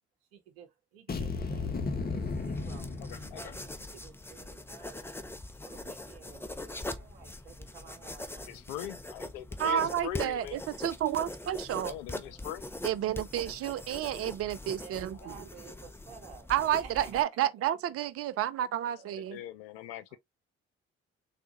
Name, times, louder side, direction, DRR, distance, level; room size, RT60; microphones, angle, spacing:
voice 1, 0.3-5.1 5.3-8.6 12.2-12.6 14.8-17.5 18.3-18.5 18.8-19.3 20.1-20.2, right 7 dB, 85° right, 0.8 m, -53 dB
sound 1, 1.1-3.9, left 4 dB, 30° left, 0.9 m, -34 dB
sound 2, 1.5-17.2, left 1 dB, 10° left, 0.6 m, -43 dB
voice 2, 3.0-3.5 8.5-10.6 11.8-12.6 15.1-15.3 18.9-19.0 19.3-20.2, left 12 dB, 80° left, 0.5 m, -41 dB
voice 3, 9.6-11.9 12.8-15.4 16.5-19.4, right 11 dB, 50° right, 0.5 m, -31 dB
3.5 x 2.4 x 2.9 m
hypercardioid pair, 50°, 30 cm